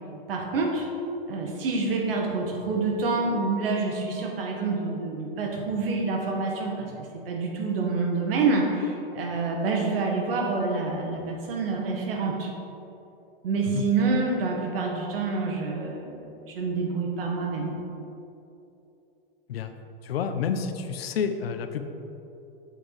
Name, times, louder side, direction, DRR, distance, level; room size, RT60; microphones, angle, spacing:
voice 1, 0.3-0.9 1.3-6.9 7.3-12.5 13.4-17.7, right 3 dB, 70° right, 1 dB, 1.7 m, -27 dB
voice 2, 20.0-21.8, left 7 dB, 90° left, 8 dB, 0.8 m, -29 dB
7.8 x 6.3 x 4.8 m, 2.8 s
hypercardioid pair, 145°, 30 cm